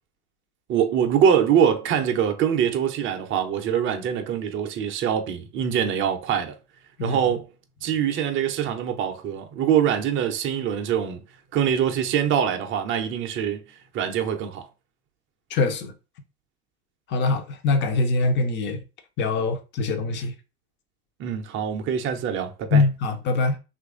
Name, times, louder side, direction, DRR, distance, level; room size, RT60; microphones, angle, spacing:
voice 1, 0.7-6.5 7.0-7.5 7.8-11.2 11.5-13.6 13.9-14.7 21.2-22.8, right 8 dB, 25° right, 0.6 m, -24 dB
voice 2, 15.5-15.9 17.1-18.8 19.2-20.3 22.7-23.6, left 3 dB, 25° left, 0.6 m, -23 dB
2.9 x 2.6 x 3.6 m
hypercardioid pair, 105°, 45 cm